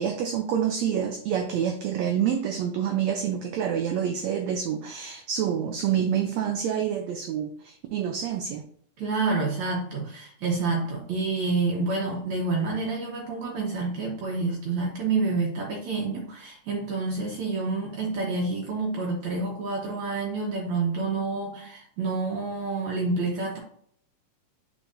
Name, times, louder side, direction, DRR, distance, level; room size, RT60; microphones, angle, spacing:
voice 1, 0.0-8.6, right 8 dB, 85° right, 5 dB, 1.5 m, -27 dB
voice 2, 9.0-23.6, right 3 dB, 65° right, -2 dB, 2.3 m, -28 dB
7.7 x 4.7 x 2.6 m, 0.62 s
omnidirectional pair, 3.8 m